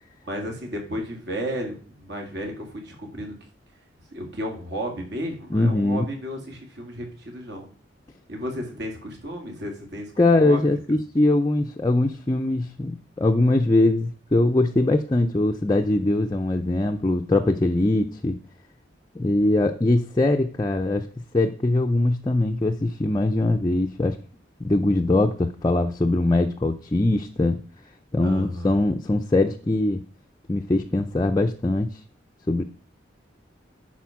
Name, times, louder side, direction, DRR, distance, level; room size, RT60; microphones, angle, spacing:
voice 1, 0.2-3.3 4.1-7.7 8.3-10.7 28.2-28.8, equal, 60° right, 2 dB, 2.4 m, -33 dB
voice 2, 5.5-6.0 10.2-18.4 19.2-21.1 21.3-24.2 24.6-27.6 28.1-30.0 30.5-32.0 32.5-32.6, left 2 dB, 20° left, 2 dB, 0.4 m, -22 dB
10.5 x 4.4 x 5.8 m, 0.42 s
head